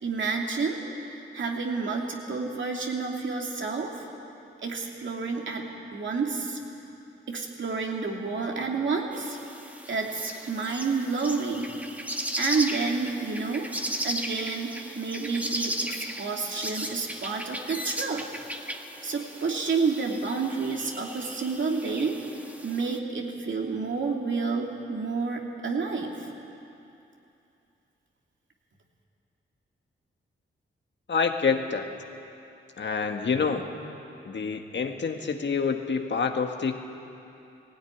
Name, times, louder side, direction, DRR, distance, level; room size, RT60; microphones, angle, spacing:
voice 1, 0.0-4.1 4.6-5.6 5.9-6.6 7.3-9.4 9.9-11.7 12.4-13.7 14.0-18.2 19.0-22.1 22.6-26.3, right 4 dB, 65° right, 0 dB, 2.9 m, -29 dB
sound 1, 9.1-23.0, equal, 5° right, 1.6 m, -36 dB
voice 2, 31.1-31.9 32.8-33.6 34.3-36.8, left 5 dB, 60° left, 5 dB, 1.6 m, -27 dB
17.5 x 16.5 x 9.9 m, 2.8 s
cardioid pair, 65°, 21 cm